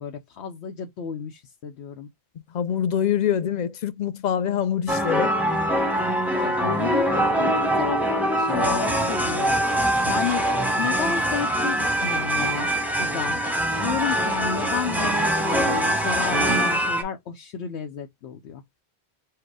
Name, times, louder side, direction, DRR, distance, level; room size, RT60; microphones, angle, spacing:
voice 1, 0.0-2.1 6.3-9.6 10.1-10.5 10.8-12.7 13.0-13.4 13.8-18.6, left 7 dB, 90° left, 0.9 m, -31 dB
voice 2, 2.5-5.4, left 9 dB, 55° left, 0.5 m, -25 dB
sound 1, 4.9-17.0, right 1 dB, ahead, 0.7 m, -23 dB
4.7 x 2.1 x 4.6 m
omnidirectional pair, 1.1 m